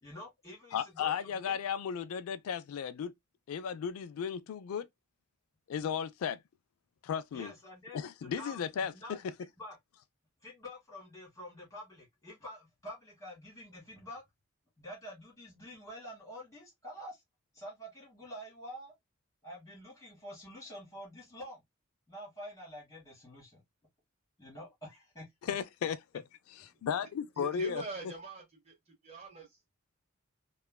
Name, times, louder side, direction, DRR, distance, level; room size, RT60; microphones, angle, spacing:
voice 1, 0.0-1.6 7.3-9.2 9.6-9.7 10.4-14.2 14.8-17.2 17.5-18.9 19.4-21.6 22.1-23.6 24.4-25.5, equal, 15° left, 1.7 m, -48 dB
voice 2, 0.7-3.1 3.5-4.9 5.7-6.4 7.0-7.5 7.9-9.2 25.4-26.0 26.6-27.8, left 7 dB, 85° left, 0.3 m, -35 dB
voice 3, 27.4-29.7, right 3 dB, 30° right, 0.9 m, -44 dB
2.9 x 2.3 x 2.2 m
head